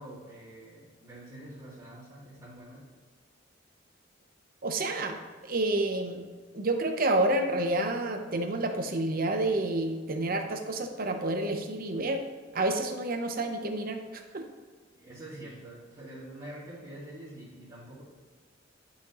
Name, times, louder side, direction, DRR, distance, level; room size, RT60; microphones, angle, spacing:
voice 1, 0.0-2.9 14.9-18.0, right 1 dB, 20° right, -13 dB, 2.3 m, -46 dB
voice 2, 4.6-6.2 6.5-12.2 12.5-14.5, right 2 dB, 50° right, 5 dB, 0.8 m, -29 dB
11.5 x 5.8 x 3.0 m, 1.5 s
head